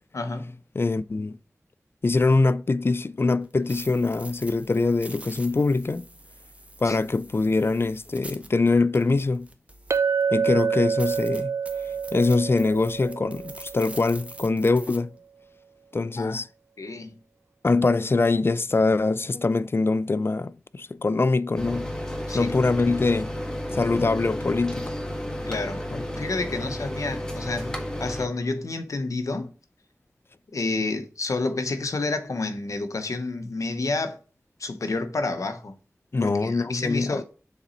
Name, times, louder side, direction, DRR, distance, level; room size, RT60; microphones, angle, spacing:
voice 1, 0.1-0.6 6.8-7.0 16.2-16.4 16.8-17.1 22.3-22.7 25.4-29.5 30.5-34.2 34.6-35.7 36.2-37.2, left 3 dB, 80° left, 0.9 m, -30 dB
voice 2, 0.8-1.4 2.0-6.0 6.8-9.5 10.3-11.5 12.1-15.1 15.9-16.5 17.6-22.0 22.3-23.3 23.7-24.9 25.9-26.0 36.1-37.2, left 3 dB, 45° left, 0.4 m, -23 dB
sound 1, 3.4-10.2 10.6-10.7 11.0-15.0, right 1 dB, 25° right, 1.1 m, -45 dB
Chink clink, 9.9-14.4, right 6 dB, 65° right, 0.4 m, -27 dB
sound 2, 21.6-28.3, equal, 15° left, 1.5 m, -32 dB
7.0 x 4.1 x 4.1 m
cardioid pair, 45°, 5 cm